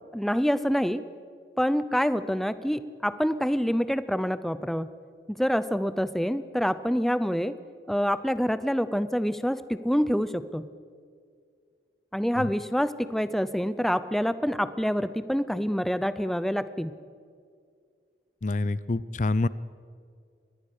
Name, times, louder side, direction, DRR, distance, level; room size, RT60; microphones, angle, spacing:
voice 1, 0.1-1.0 1.6-4.9 5.3-7.6 7.9-10.7 12.1-16.9, equal, ahead, 14 dB, 0.6 m, -26 dB
voice 2, 18.4-19.5, left 2 dB, 45° left, 18 dB, 0.6 m, -26 dB
24.0 x 20.0 x 6.6 m, 2.2 s
head